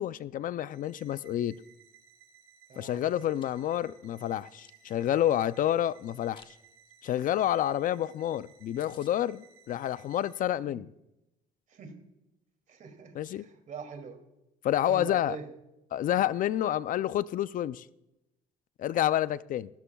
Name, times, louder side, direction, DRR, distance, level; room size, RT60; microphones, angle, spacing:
voice 1, 0.0-1.5 2.8-6.6 7.0-10.9 13.1-13.4 14.6-15.4 15.9-17.9 18.8-19.7, left 11 dB, 55° left, 0.4 m, -29 dB
sound 1, 0.7-10.4, right 7 dB, 85° right, 3.3 m, -59 dB
voice 2, 2.7-3.0 10.7-10.8 11.7-12.0 12.7-14.2 14.7-15.5, right 5 dB, 50° right, 2.5 m, -43 dB
Chewing mastication, 3.2-3.5 4.0-5.5 6.0-6.5 6.9-7.1 7.4-7.5 7.8-7.9 8.2-8.3 8.5-8.6 8.8-9.1, left 5 dB, 30° left, 1.5 m, -57 dB
22.0 x 13.0 x 2.3 m
cardioid pair, 110°, 17 cm